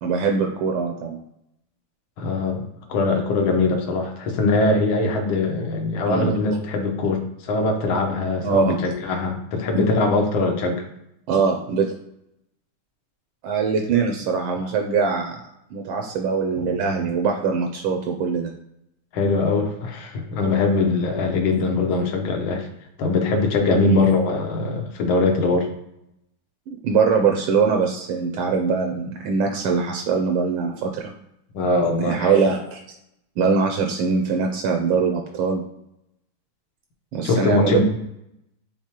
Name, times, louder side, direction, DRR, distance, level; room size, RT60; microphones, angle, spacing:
voice 1, 0.0-1.2 6.1-6.3 8.4-8.8 9.7-9.9 11.3-11.9 13.4-15.4 15.7-18.5 23.8-24.0 26.7-31.1 32.0-32.8 33.4-35.6 37.1-37.8, right 5 dB, 80° right, 2 dB, 1.4 m, -22 dB
voice 2, 2.2-10.8 19.1-22.7 23.0-25.7 31.5-32.4 37.2-37.8, left 3 dB, 70° left, 3 dB, 1.6 m, -22 dB
4.7 x 3.6 x 2.9 m, 0.81 s
omnidirectional pair, 2.4 m